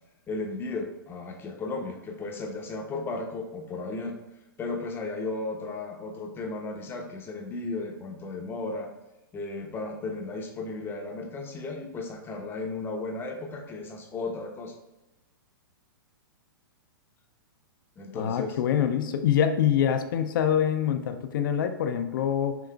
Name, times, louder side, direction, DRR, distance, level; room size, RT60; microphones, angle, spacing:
voice 1, 0.3-4.2 4.6-8.9 9.3-14.7 18.0-18.6, left 3 dB, 20° left, 3 dB, 0.6 m, -35 dB
voice 2, 18.1-22.6, left 9 dB, 60° left, 8 dB, 0.4 m, -25 dB
5.9 x 2.4 x 2.2 m, 0.99 s
hypercardioid pair, 120°, 12 cm